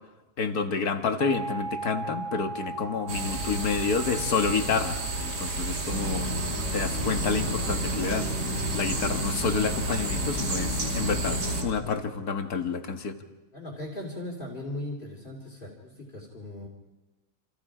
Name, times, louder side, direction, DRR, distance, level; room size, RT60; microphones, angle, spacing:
voice 1, 0.4-6.3 6.7-8.3 8.7-13.2, left 5 dB, 55° left, 7 dB, 2.0 m, -29 dB
sound 1, 1.2-5.9, right 3 dB, 40° right, 2.6 m, -39 dB
sound 2, 3.1-11.6, right 3 dB, 65° right, 3.2 m, -32 dB
sound 3, 5.9-11.7, left 1 dB, 90° right, 5.9 m, -32 dB
voice 2, 13.5-16.7, left 1 dB, 30° left, -3 dB, 3.4 m, -38 dB
28.0 x 27.5 x 5.0 m, 1.1 s
omnidirectional pair, 1.9 m